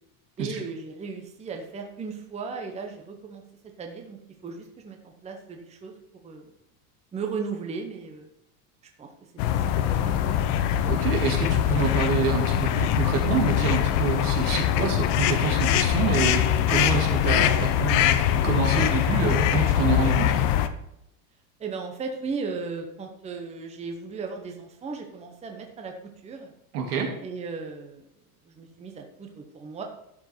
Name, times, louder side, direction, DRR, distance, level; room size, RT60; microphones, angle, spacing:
voice 1, 0.4-3.4 3.8-5.0 5.2-5.9 6.2-6.5 7.1-8.3 9.0-9.1 9.6-10.7 21.6-25.9 26.2-26.5 27.2-28.0 28.5-29.8, right 4 dB, 15° right, 3 dB, 1.0 m, -36 dB
sound 1, 9.4-20.7, left 10 dB, 55° left, 0.8 m, -23 dB
voice 2, 10.8-18.1 18.4-20.3 26.7-27.1, right 5 dB, 80° right, 1 dB, 2.5 m, -27 dB
12.0 x 5.2 x 4.5 m, 0.80 s
supercardioid pair, 145°, 45 cm